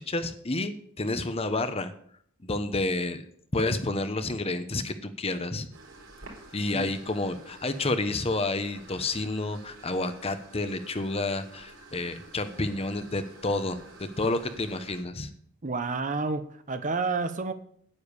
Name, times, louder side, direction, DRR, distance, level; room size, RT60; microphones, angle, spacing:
voice 1, 0.0-1.9 2.4-3.2 3.5-5.7 6.5-15.3, left 2 dB, 30° left, 10 dB, 0.9 m, -30 dB
sound 1, 5.7-15.0, right 2 dB, 60° right, 4.2 m, -50 dB
voice 2, 15.6-17.5, right 4 dB, 35° right, 10 dB, 0.9 m, -30 dB
9.8 x 9.2 x 6.8 m, 0.63 s
head